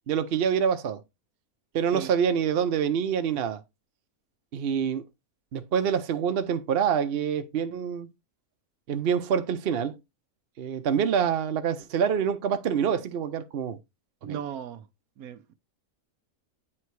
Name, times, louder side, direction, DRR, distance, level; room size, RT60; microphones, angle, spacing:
voice 1, 0.1-1.0 1.7-3.6 4.5-5.0 5.5-8.1 8.9-10.0 10.6-13.8 14.2-14.4, right 7 dB, 50° right, 0.9 m, -26 dB
voice 2, 14.2-14.9 15.2-15.5, right 9 dB, 85° right, 1.2 m, -37 dB
8.7 x 3.5 x 4.6 m
omnidirectional pair, 1.5 m